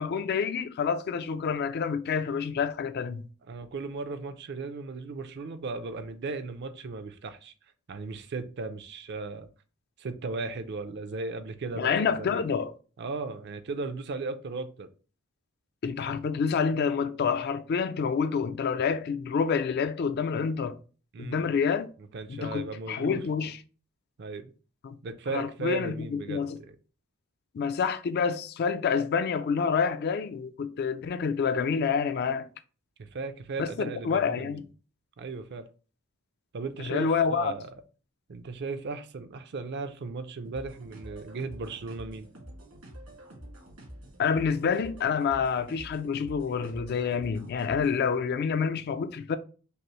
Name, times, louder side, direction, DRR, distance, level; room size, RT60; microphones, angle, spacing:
voice 1, 0.0-3.2 11.8-12.7 15.8-20.8 21.2-21.9 22.3-23.6 24.8-25.0 25.3-26.6 27.5-32.5 33.6-34.6 36.8-37.5 44.2-49.4, left 6 dB, 50° left, 0.3 m, -28 dB
voice 2, 3.5-7.5 7.9-9.5 10.0-12.4 13.0-14.9 21.1-21.4 22.1-23.2 24.2-24.5 25.0-26.8 33.0-34.6 35.2-35.7 36.5-37.7 38.3-42.3, right 3 dB, 50° right, 0.4 m, -36 dB
sound 1, 40.4-48.1, equal, 80° right, 1.8 m, -47 dB
5.3 x 2.0 x 3.0 m
head